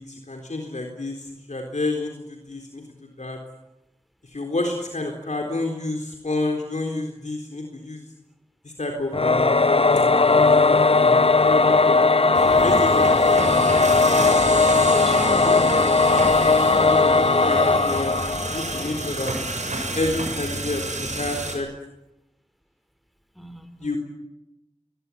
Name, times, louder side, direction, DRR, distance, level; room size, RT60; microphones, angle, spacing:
voice 1, 0.0-2.8 3.2-3.4 4.2-8.1 8.6-9.6 10.4-11.2 11.5-12.0 12.6-13.2 15.4-15.7 16.7-18.1 18.5-19.3 19.9-21.7 23.8-24.0, left 2 dB, 85° left, 3 dB, 3.9 m, -29 dB
Singing / Musical instrument, 9.1-19.2, left 3 dB, 55° left, 0.9 m, -18 dB
sound 1, 12.3-21.6, right 2 dB, 85° right, 6.9 m, -30 dB
voice 2, 14.5-15.8 23.3-24.0, equal, ahead, 10 dB, 4.3 m, -37 dB
23.5 x 21.5 x 9.9 m, 0.91 s
wide cardioid pair, 40°, 12 cm